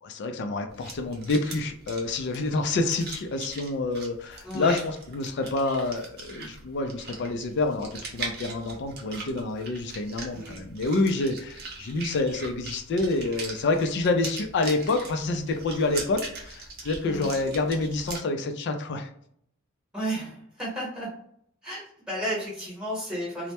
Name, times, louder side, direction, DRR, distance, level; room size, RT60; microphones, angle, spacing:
voice 1, 0.0-19.1, left 2 dB, 55° left, 6 dB, 0.4 m, -28 dB
sound 1, 0.7-18.2, right 3 dB, 50° right, 0.6 m, -41 dB
voice 2, 4.4-4.8 10.3-10.5 17.0-17.3 19.9-21.1 21.6-23.5, right 1 dB, 5° right, -6 dB, 0.9 m, -33 dB
2.1 x 2.0 x 2.8 m, 0.67 s
head